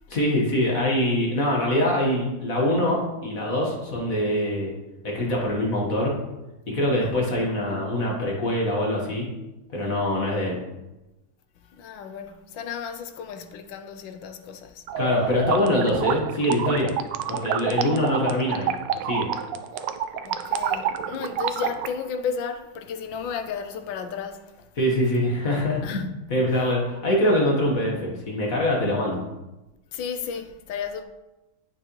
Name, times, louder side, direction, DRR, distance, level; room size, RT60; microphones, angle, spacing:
voice 1, 0.1-4.7 5.0-6.1 6.7-9.3 9.7-10.6 15.0-16.9 17.3-18.7 19.0-19.3 24.8-29.2, left 1 dB, 45° left, 1.7 m, -24 dB
voice 2, 11.7-14.8 20.2-24.7 25.8-26.1 29.9-31.0, left 6 dB, 75° left, 1.2 m, -33 dB
sound 1, 14.9-21.9, right 9 dB, 75° right, 1.0 m, -28 dB
9.0 x 6.2 x 3.1 m
omnidirectional pair, 2.4 m